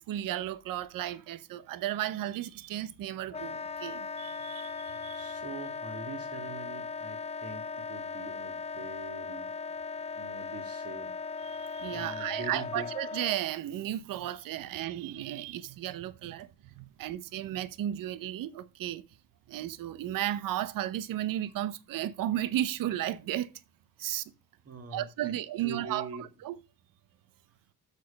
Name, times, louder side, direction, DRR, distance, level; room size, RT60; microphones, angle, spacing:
voice 1, 0.1-5.4 11.5-19.0 19.5-23.5 24.0-24.3 24.9-26.1 26.4-26.5, right 12 dB, 75° right, 0.8 m, -34 dB
Wind instrument woodwind instrument, 3.3-13.4, left 4 dB, 20° left, 0.4 m, -38 dB
voice 2, 5.1-9.5 10.2-11.2 11.9-12.9 24.7-26.3, right 3 dB, 45° right, 1.9 m, -43 dB
6.7 x 6.5 x 5.2 m
cardioid pair, 85°, 34 cm